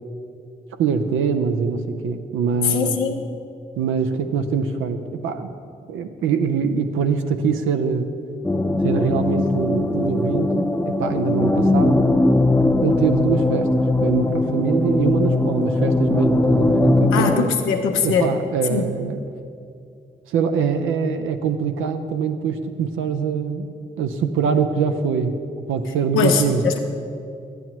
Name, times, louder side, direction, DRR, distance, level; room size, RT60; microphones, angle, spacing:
voice 1, 0.8-3.0 3.8-5.5 5.9-8.1 8.8-12.1 12.8-13.7 14.0-17.5 18.0-19.2 20.3-23.7 24.0-25.3 25.7-26.6, right 6 dB, 80° right, 7 dB, 0.6 m, -23 dB
voice 2, 2.6-3.2 17.1-18.3 18.7-18.9 26.1-26.8, left 6 dB, 90° left, 4 dB, 0.7 m, -21 dB
sound 1, 8.4-17.4, left 2 dB, 10° left, 0.6 m, -20 dB
11.0 x 8.9 x 3.0 m, 2.5 s
supercardioid pair, 40°, 21 cm